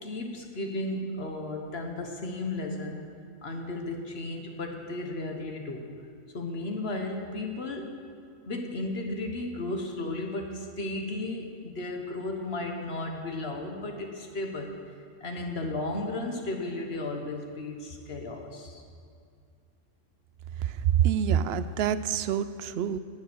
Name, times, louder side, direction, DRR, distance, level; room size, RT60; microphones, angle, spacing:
voice 1, 0.0-3.0 3.4-5.9 6.3-7.9 8.5-14.7 15.2-18.8, left 2 dB, 55° left, 3 dB, 1.5 m, -34 dB
voice 2, 20.6-23.0, right 9 dB, 65° right, 14 dB, 0.7 m, -26 dB
17.5 x 7.5 x 6.3 m, 2.3 s
omnidirectional pair, 1.3 m